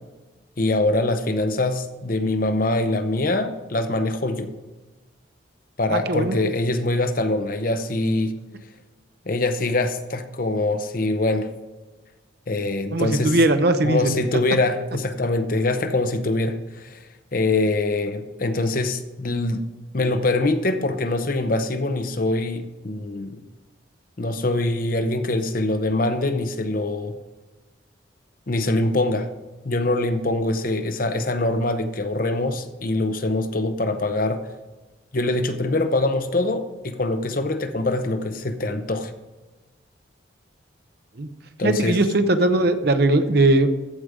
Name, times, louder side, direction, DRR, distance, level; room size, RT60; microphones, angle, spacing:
voice 1, 0.6-4.5 5.8-8.3 9.3-11.5 12.5-13.4 13.8-17.0 17.3-19.6 19.9-23.4 24.2-27.2 28.5-29.3 29.6-34.4 35.1-39.1 41.6-42.0, left 2 dB, 45° left, 8 dB, 0.8 m, -23 dB
voice 2, 5.9-6.4 12.9-14.2 41.2-41.3 41.6-43.7, right 2 dB, 55° right, 9 dB, 0.8 m, -19 dB
14.5 x 5.1 x 5.0 m, 1.2 s
head